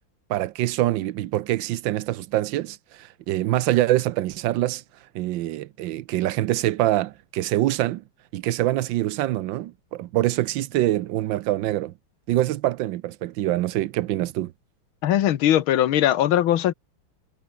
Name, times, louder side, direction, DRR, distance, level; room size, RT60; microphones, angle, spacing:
voice 1, 0.3-4.8 5.1-8.0 8.3-11.9 12.3-14.5, right 15 dB, 75° right, 1.4 m, -25 dB
voice 2, 15.0-16.7, left 12 dB, 90° left, 1.9 m, -20 dB
omnidirectional pair, 2.2 m